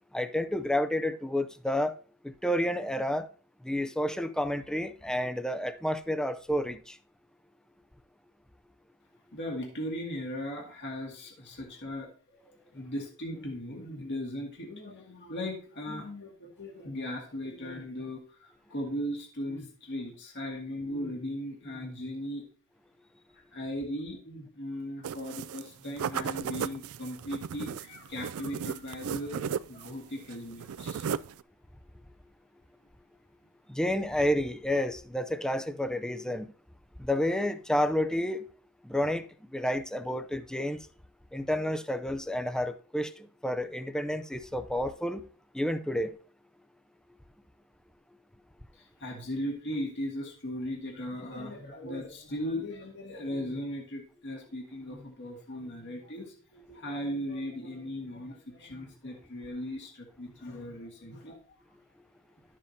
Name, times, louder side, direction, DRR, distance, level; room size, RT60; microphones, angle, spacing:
voice 1, 0.1-1.9 2.2-3.3 3.6-7.0 33.7-36.5 37.0-38.4 38.8-39.2 39.5-40.8 41.3-45.2 45.5-46.1, left 1 dB, 5° left, 0.5 m, -30 dB
voice 2, 9.3-22.4 23.3-31.1 48.8-61.4, left 1 dB, 55° left, 2.0 m, -38 dB
sound 1, 25.0-25.7 26.0-30.0 30.3-31.4, right 7 dB, 85° right, 0.4 m, -35 dB
12.0 x 7.5 x 2.8 m
head